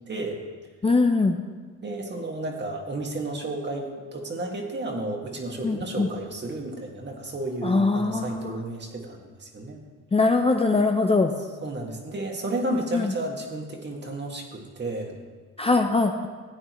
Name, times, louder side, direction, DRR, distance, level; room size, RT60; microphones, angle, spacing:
voice 1, 0.1-0.4 1.8-9.8 11.4-15.2, right 2 dB, 35° right, 1 dB, 1.9 m, -32 dB
voice 2, 0.8-1.4 5.6-6.1 7.6-8.6 10.1-11.3 12.7-13.1 15.6-16.3, left 3 dB, 20° left, 4 dB, 0.6 m, -22 dB
15.0 x 8.9 x 3.1 m, 1.5 s
cardioid pair, 90°, 30 cm